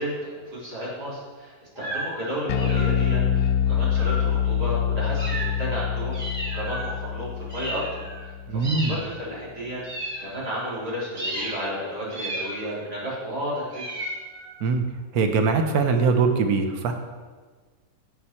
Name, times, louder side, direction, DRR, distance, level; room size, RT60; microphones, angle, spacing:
voice 1, 0.0-6.2 6.5-9.8 10.2-13.8, equal, 85° right, -7 dB, 4.0 m, -33 dB
sound 1, 1.8-2.2 2.5-3.2 3.9-4.4 5.2-5.8 6.1-7.0 7.5-8.3 8.6-9.3 9.8-10.7 11.2-11.7 12.1-12.9 13.7-14.6, right 1 dB, 35° right, 2.5 m, -34 dB
Bass guitar, 2.5-8.9, left 9 dB, 75° left, 1.0 m, -25 dB
voice 2, 8.5-8.9 14.6-14.8 15.1-16.9, right 4 dB, 70° right, 5 dB, 1.4 m, -22 dB
11.0 x 8.3 x 4.4 m, 1.4 s
omnidirectional pair, 1.7 m